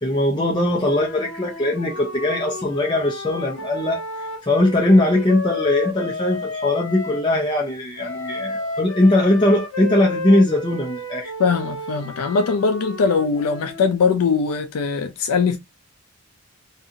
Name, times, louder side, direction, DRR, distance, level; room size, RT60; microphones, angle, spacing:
voice 1, 0.0-4.0 4.4-11.3, left 1 dB, 20° left, 0.5 m, -20 dB
Wind instrument woodwind instrument, 0.9-7.3 8.0-14.0, left 2 dB, 65° left, 1.2 m, -32 dB
voice 2, 11.4-15.6, left 5 dB, 85° left, 0.4 m, -21 dB
2.7 x 2.5 x 2.6 m
head